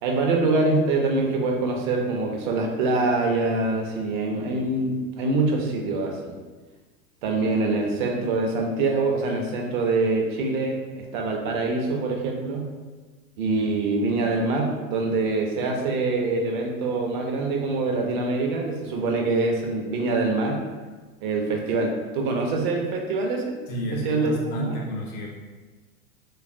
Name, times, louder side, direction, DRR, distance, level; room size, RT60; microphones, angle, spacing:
voice 1, 0.0-6.3 7.2-12.7 13.4-20.6 21.2-23.5 23.9-24.8, right 3 dB, 35° right, 2 dB, 0.5 m, -24 dB
voice 2, 23.7-25.3, equal, 25° left, -1 dB, 0.5 m, -31 dB
3.3 x 2.3 x 2.4 m, 1.3 s
figure-of-eight pair, 90°, 42 cm